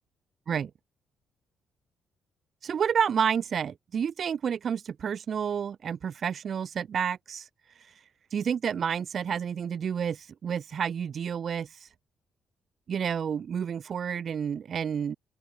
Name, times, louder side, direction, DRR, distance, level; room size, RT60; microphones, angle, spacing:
voice 1, 2.6-7.5 8.3-11.9 12.9-15.1, right 7 dB, 55° right, 3.8 m, -30 dB
open air
cardioid pair, 90°, 0 cm